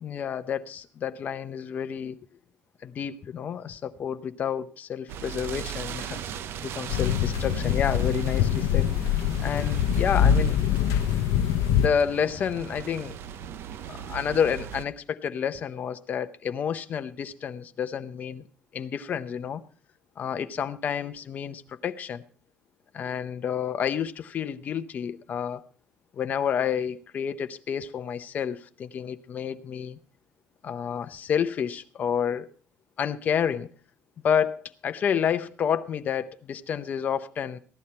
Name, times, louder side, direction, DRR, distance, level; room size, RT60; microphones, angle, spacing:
voice 1, 0.0-2.2 2.8-6.2 6.6-8.9 9.4-10.6 11.6-13.2 13.9-18.4 18.7-19.6 20.2-22.2 22.9-25.6 26.1-30.0 30.6-32.5 33.0-33.7 34.2-37.6, left 8 dB, 35° left, 0.7 m, -29 dB
sound 1, 5.1-14.8, right 9 dB, 50° right, 0.7 m, -38 dB
sound 2, 6.9-11.9, left 9 dB, 85° left, 0.7 m, -24 dB
15.5 x 11.0 x 4.3 m
cardioid pair, 170°, 5 cm